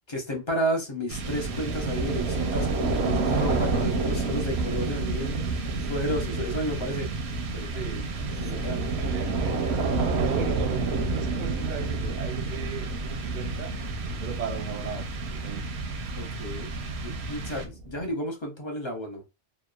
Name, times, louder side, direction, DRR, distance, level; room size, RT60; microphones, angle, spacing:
voice 1, 0.1-5.4 5.9-7.1 7.5-7.9 8.4-8.8 16.2-16.8 17.0-19.3, equal, 35° left, 0.5 m, -32 dB
sound 1, 1.1-18.0, right 3 dB, 80° right, 0.9 m, -29 dB
voice 2, 3.3-4.0 7.7-8.1 8.8-9.7 10.1-13.8 14.2-15.7, right 8 dB, 60° right, 0.6 m, -37 dB
2.9 x 2.1 x 2.3 m
omnidirectional pair, 1.1 m